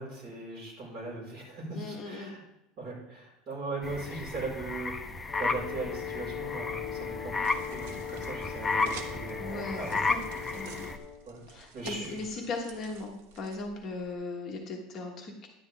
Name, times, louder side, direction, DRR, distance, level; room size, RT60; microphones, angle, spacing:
voice 1, 0.0-2.4 2.8-4.9 5.3-10.1 10.3-10.6 11.2-11.4 11.7-12.2, right 3 dB, 35° right, -4 dB, 4.6 m, -39 dB
voice 2, 1.7-2.3 9.4-10.2 10.5-10.9 11.5-15.5, left 3 dB, 30° left, 0 dB, 1.3 m, -38 dB
sound 1, 3.8-11.0, left 3 dB, 10° left, 0.5 m, -33 dB
Brass instrument, 5.3-11.3, left 9 dB, 55° left, 0.9 m, -40 dB
sound 2, 6.1-14.1, right 6 dB, 85° right, 1.1 m, -50 dB
10.5 x 9.8 x 3.4 m, 0.86 s
cardioid pair, 170°, 0 cm